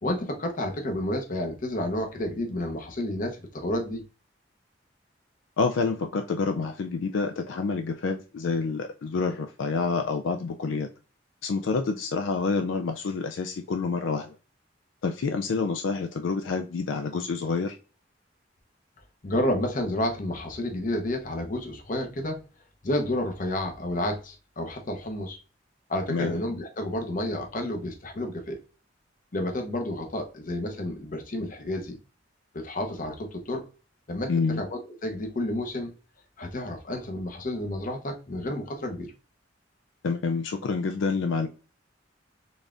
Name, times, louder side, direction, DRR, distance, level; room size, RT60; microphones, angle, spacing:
voice 1, 0.0-4.0 19.2-22.4 22.8-25.4 25.9-28.6 29.3-32.0 32.5-33.7 34.1-34.3 34.6-35.9 36.4-39.1, left 1 dB, 45° left, 0.8 m, -30 dB
voice 2, 5.6-10.9 11.4-14.4 15.0-17.8 26.1-26.4 34.3-34.7 40.0-41.5, left 4 dB, 75° left, 0.4 m, -28 dB
4.0 x 3.4 x 2.4 m
head